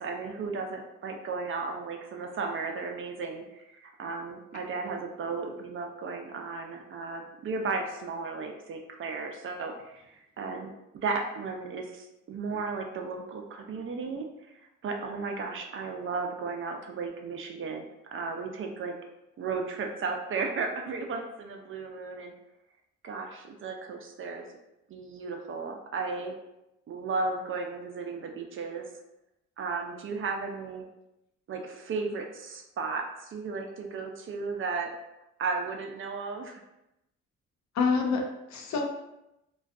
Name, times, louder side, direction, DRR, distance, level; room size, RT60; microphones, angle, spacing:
voice 1, 0.0-18.9 19.4-22.3 23.0-24.5 24.9-26.3 26.9-28.9 29.6-30.9 31.5-35.0 35.4-36.6, right 4 dB, 45° right, 3 dB, 0.4 m, -35 dB
voice 2, 37.7-38.8, left 4 dB, 65° left, 3 dB, 0.5 m, -27 dB
2.5 x 2.3 x 2.4 m, 0.89 s
cardioid pair, 90°, 30 cm